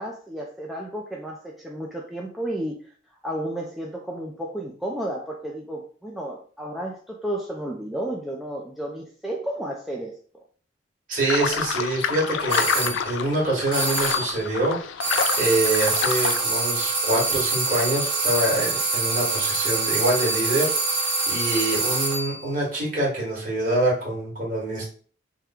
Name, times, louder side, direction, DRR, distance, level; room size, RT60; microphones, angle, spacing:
voice 1, 0.0-2.8 3.2-10.2, right 1 dB, ahead, -2 dB, 0.4 m, -32 dB
voice 2, 11.1-20.7 21.0-24.9, right 1 dB, 45° right, -5 dB, 2.0 m, -25 dB
sound 1, 11.3-16.4, left 7 dB, 75° left, 0.3 m, -28 dB
sound 2, 12.5-13.0 13.7-14.3 15.0-22.4, right 3 dB, 60° right, 1.4 m, -25 dB
3.7 x 2.2 x 4.4 m, 0.44 s
head